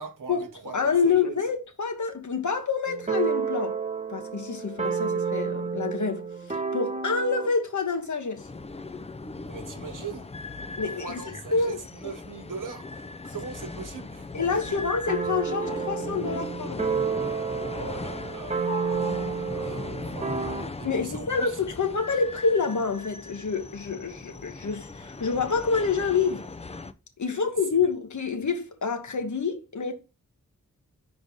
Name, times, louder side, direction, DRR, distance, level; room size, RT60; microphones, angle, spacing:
voice 1, 0.0-1.4 9.4-10.3 10.9-14.8 17.8-21.5 27.3-27.4, right 5 dB, 70° right, 1.0 m, -41 dB
voice 2, 0.7-3.8 4.1-8.5 10.8-11.2 11.5-11.8 14.3-17.0 20.8-26.5 27.2-29.9, left 5 dB, 60° left, 1.2 m, -27 dB
sound 1, 2.9-7.6 15.1-20.6, right 5 dB, 20° right, 0.8 m, -30 dB
sound 2, 8.4-26.9, left 3 dB, 20° left, 0.4 m, -38 dB
4.9 x 3.9 x 5.2 m
cardioid pair, 45°, 33 cm